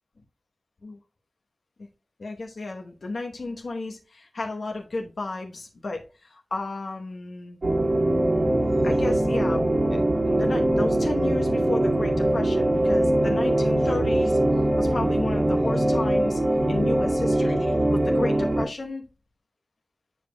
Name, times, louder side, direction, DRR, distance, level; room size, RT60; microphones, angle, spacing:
voice 1, 2.2-7.6 8.8-10.0 10.3-14.4 14.8-16.4 16.7-19.1, left 3 dB, 75° left, 0.9 m, -33 dB
sound 1, 7.6-18.6, right 1 dB, 60° right, 2.1 m, -22 dB
8.8 x 5.2 x 2.2 m
wide cardioid pair, 80°, 0 cm